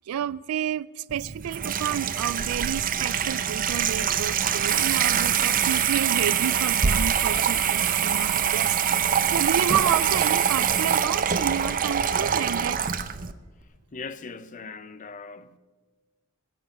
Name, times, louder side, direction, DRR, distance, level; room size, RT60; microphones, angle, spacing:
voice 1, 0.1-9.0 9.3-12.8, right 9 dB, 70° right, 0.3 m, -30 dB
Water tap faucet / Sink (filling or washing), 1.1-13.3, right 8 dB, 40° right, 0.6 m, -24 dB
voice 2, 13.9-15.6, left 4 dB, 35° left, 0.7 m, -39 dB
21.0 x 8.3 x 5.9 m
head